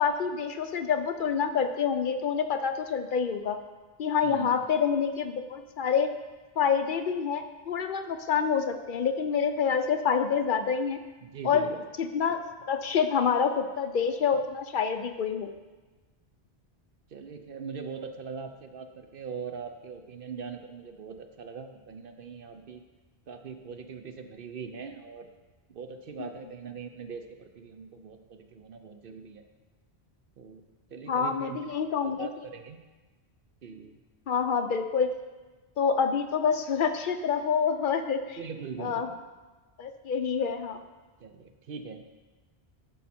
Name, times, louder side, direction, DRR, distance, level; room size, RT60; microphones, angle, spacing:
voice 1, 0.0-3.6 4.0-6.1 6.6-11.0 11.4-11.7 12.0-12.4 12.7-15.5 26.2-26.3 31.1-32.3 34.3-35.1 35.8-38.4 38.8-39.1 39.8-40.8, left 6 dB, 55° left, 8 dB, 0.7 m, -27 dB
voice 2, 4.2-4.6 11.2-11.8 17.1-22.8 23.3-25.3 25.7-29.4 30.4-30.6 30.9-31.6 32.0-32.8 33.6-34.0 38.4-39.2 41.2-42.0, right 6 dB, 60° right, 6 dB, 0.8 m, -41 dB
11.5 x 5.4 x 4.3 m, 1.2 s
omnidirectional pair, 1.1 m